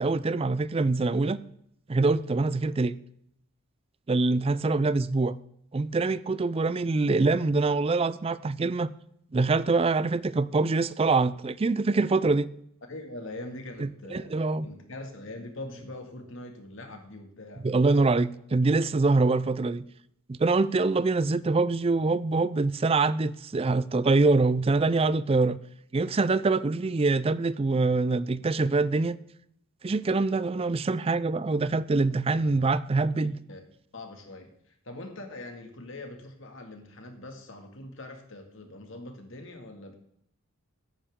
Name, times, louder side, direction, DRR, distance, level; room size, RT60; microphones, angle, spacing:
voice 1, 0.0-1.4 1.9-3.0 4.1-5.4 5.7-8.9 9.3-12.5 13.8-14.7 17.6-19.8 20.3-25.6 25.9-29.2 29.8-33.4, right 3 dB, 25° right, 0.4 m, -24 dB
voice 2, 12.9-14.4 14.6-17.7 32.3-32.7 33.2-33.6 33.9-39.9, left 2 dB, 60° left, 2.1 m, -42 dB
14.0 x 9.9 x 3.7 m
head